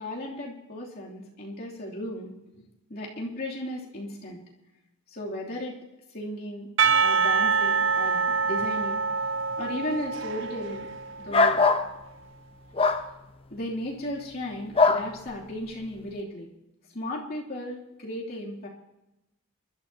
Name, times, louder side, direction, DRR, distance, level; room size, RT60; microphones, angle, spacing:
voice 1, 0.0-2.6 2.9-4.4 5.1-5.8 6.1-6.7 7.0-9.0 9.6-10.9 11.2-11.6 13.5-16.5 16.9-18.7, left 1 dB, 45° left, -4 dB, 2.9 m, -35 dB
Percussion / Church bell, 6.8-11.8, right 5 dB, 60° right, 0.5 m, -26 dB
sound 1, 11.3-11.9 12.8-13.0 14.7-15.0, left 4 dB, 25° left, 0.8 m, -20 dB
24.5 x 12.5 x 2.8 m, 0.92 s
head